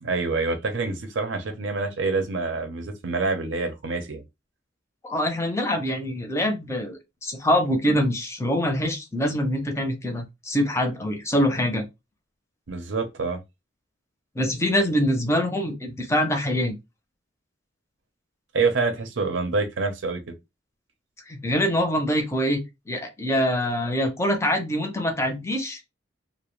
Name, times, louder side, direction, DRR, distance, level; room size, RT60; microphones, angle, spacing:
voice 1, 0.0-4.2 12.7-13.4 18.5-20.4, right 4 dB, 75° right, 0.6 m, -26 dB
voice 2, 5.0-11.8 14.4-16.7 21.3-25.8, equal, 15° left, 0.5 m, -24 dB
2.4 x 2.1 x 3.0 m
head